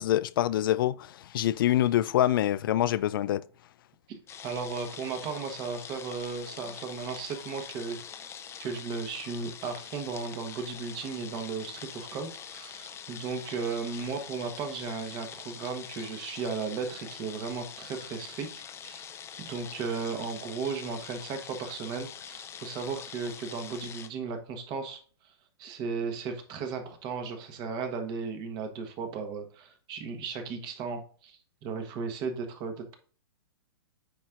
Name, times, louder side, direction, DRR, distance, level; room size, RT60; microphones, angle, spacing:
voice 1, 0.0-3.4, left 13 dB, 60° left, 0.4 m, -25 dB
sound 1, 4.3-24.1, left 8 dB, 20° left, 0.7 m, -44 dB
voice 2, 4.4-8.0 8.6-19.0 19.4-25.3 25.6-32.9, right 5 dB, 35° right, 1.3 m, -35 dB
9.3 x 4.4 x 2.5 m
hypercardioid pair, 120°, 13 cm